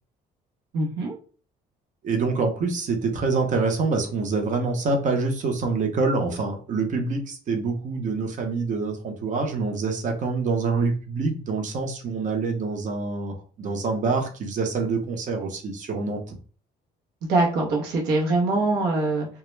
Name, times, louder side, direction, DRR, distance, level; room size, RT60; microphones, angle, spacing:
voice 1, 0.7-1.2 17.3-19.3, right 2 dB, 85° right, -1 dB, 0.8 m, -23 dB
voice 2, 2.0-16.4, right 4 dB, 50° right, 4 dB, 0.7 m, -26 dB
2.2 x 2.0 x 3.1 m, 0.39 s
cardioid pair, 110°, 17 cm